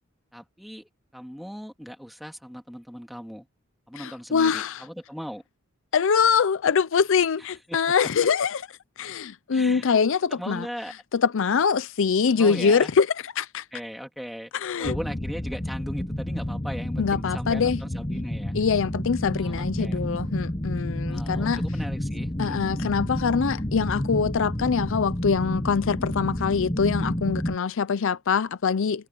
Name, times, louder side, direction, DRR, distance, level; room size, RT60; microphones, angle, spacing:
voice 1, 0.3-3.5 3.9-5.4 7.7-8.1 9.5-9.9 10.3-10.9 12.3-12.9 13.7-14.5 14.8-18.5 19.3-20.0 21.1-22.6, equal, ahead, 3.3 m, -38 dB
voice 2, 4.0-4.8 5.9-8.7 9.0-10.7 11.1-13.6 14.5-15.0 17.0-17.8 18.5-21.6 22.4-29.0, left 6 dB, 65° left, 0.5 m, -24 dB
sound 1, 14.8-27.6, left 1 dB, 20° left, 1.2 m, -30 dB
head